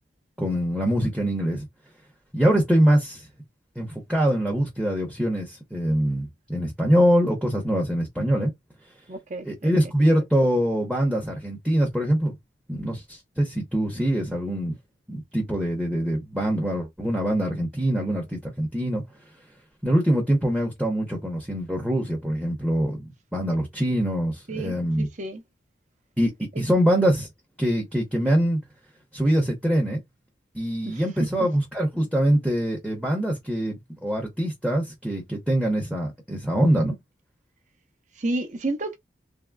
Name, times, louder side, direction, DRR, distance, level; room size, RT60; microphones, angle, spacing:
voice 1, 0.4-1.7 2.3-3.3 3.8-8.5 9.4-12.4 12.7-14.8 15.1-19.0 19.8-23.0 23.3-25.1 26.2-26.3 26.6-27.3 27.6-28.6 29.1-30.0 30.5-36.9, equal, 5° right, 0.8 m, -24 dB
voice 2, 9.1-9.7 24.5-25.4 30.9-31.5 38.2-39.0, right 2 dB, 45° right, 0.6 m, -31 dB
3.5 x 2.0 x 2.2 m
head